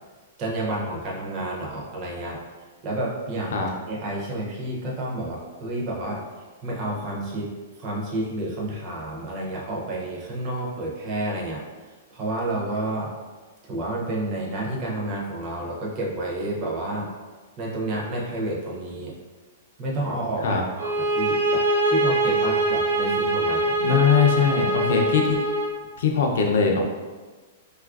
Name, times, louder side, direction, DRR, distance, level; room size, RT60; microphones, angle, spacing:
voice 1, 0.4-2.4 2.8-6.2 6.6-11.6 12.1-13.1 13.7-17.1 17.6-19.1 19.8-23.8, right 1 dB, 20° right, -3 dB, 0.5 m, -30 dB
sound 1, 20.8-25.8, right 1 dB, 75° right, 0.7 m, -23 dB
voice 2, 23.8-25.4 26.0-26.8, left 6 dB, 55° left, 1 dB, 0.5 m, -21 dB
3.9 x 2.4 x 2.3 m, 1.3 s
hypercardioid pair, 180°, 0 cm